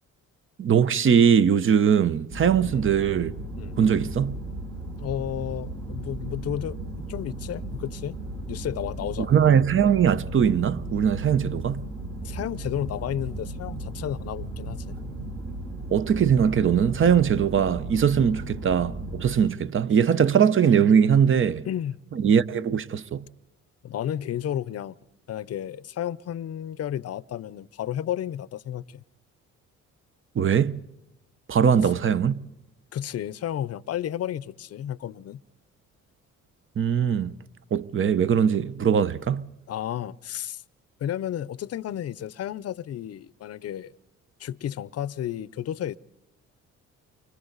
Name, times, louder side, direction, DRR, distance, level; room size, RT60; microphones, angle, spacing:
voice 1, 0.6-3.3 3.8-4.4 9.2-11.8 15.9-21.7 22.1-23.2 30.3-30.8 31.5-32.4 36.8-37.4 37.7-39.4, right 7 dB, 45° right, 0.8 m, -21 dB
sound 1, 2.3-19.3, right 1 dB, 60° right, 6.5 m, -36 dB
voice 2, 5.0-8.2 8.5-9.3 12.2-15.0 21.6-22.0 23.8-25.0 25.3-29.0 32.9-35.4 39.7-40.6 41.0-43.9 44.4-46.0, left 11 dB, 55° left, 0.7 m, -32 dB
29.5 x 24.5 x 4.0 m
cardioid pair, 90°, 30 cm